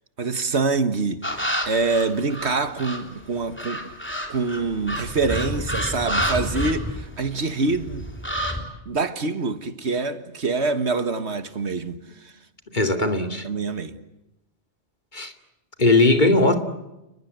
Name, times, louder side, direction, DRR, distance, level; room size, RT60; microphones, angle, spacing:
voice 1, 0.2-3.9 4.3-8.1 8.6-12.3 12.9-13.1 13.4-14.0, right 3 dB, 70° right, 1.9 m, -25 dB
sound 1, 1.2-3.1 3.6-7.4 7.7-8.6, equal, 10° left, 3.6 m, -29 dB
voice 2, 12.7-13.4 15.1-15.3 15.8-16.5, left 2 dB, 40° left, 2.7 m, -18 dB
30.0 x 21.0 x 8.0 m
omnidirectional pair, 1.2 m